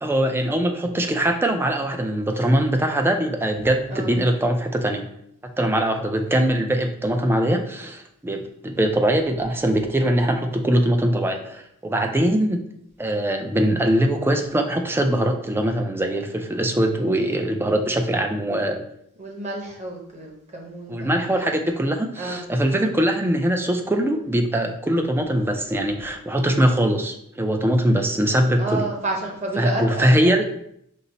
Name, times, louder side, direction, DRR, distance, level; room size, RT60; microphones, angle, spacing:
voice 1, 0.0-5.1 5.6-12.6 13.0-18.8 20.9-28.9 29.6-30.5, right 1 dB, 10° right, 4 dB, 0.4 m, -22 dB
voice 2, 19.2-21.6 22.2-22.4 28.6-30.3, right 2 dB, 30° right, 0 dB, 1.0 m, -30 dB
5.3 x 2.0 x 4.0 m, 0.73 s
head